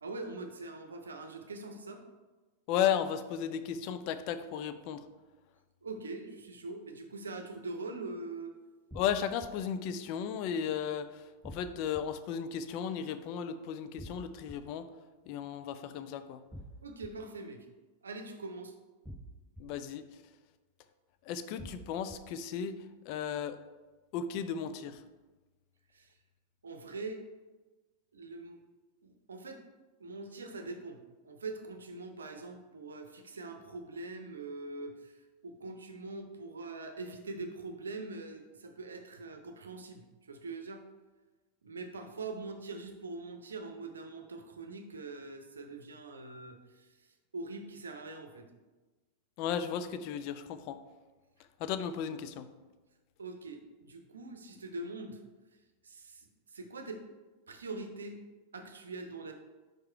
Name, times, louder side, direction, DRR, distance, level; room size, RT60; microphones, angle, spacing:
voice 1, 0.0-2.0 5.8-8.5 16.8-17.7 18.0-18.7 25.9-26.1 26.6-27.2 28.1-28.6 29.0-29.6 30.0-40.8 41.6-47.1 47.3-48.5 53.2-55.2 55.8-57.0 57.5-58.2 58.5-59.3, right 3 dB, 70° right, 5 dB, 0.7 m, -43 dB
voice 2, 2.7-5.1 8.9-14.9 15.3-16.4 19.6-20.2 21.2-23.6 24.1-25.0 49.4-50.8 51.6-52.5, left 8 dB, 45° left, 11 dB, 0.4 m, -35 dB
sound 1, 8.9-9.5 11.4-12.0 14.0-14.6 16.5-17.1 19.1-19.6 21.6-22.2, equal, 10° right, 0.6 m, -46 dB
4.8 x 4.7 x 4.4 m, 1.2 s
figure-of-eight pair, 90°, 0 cm